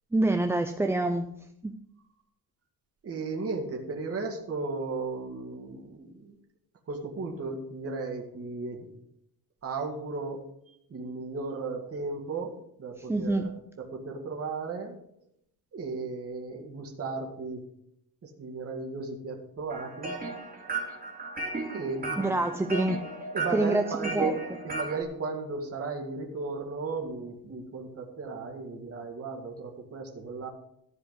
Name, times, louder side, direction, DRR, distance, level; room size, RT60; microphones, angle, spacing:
voice 1, 0.1-1.3 1.6-1.8 13.1-13.5 22.2-23.0 23.5-23.8 24.1-24.3, right 2 dB, 5° right, 6 dB, 0.4 m, -26 dB
voice 2, 3.0-6.3 6.9-8.9 9.6-10.4 10.9-15.0 15.7-17.6 18.2-20.1 21.6-22.4 23.3-24.3 24.6-30.5, right 4 dB, 40° right, 1 dB, 2.2 m, -35 dB
sound 1, 19.7-25.0, right 2 dB, 25° right, 2.3 m, -35 dB
14.0 x 4.9 x 8.1 m, 0.74 s
cardioid pair, 170°, 37 cm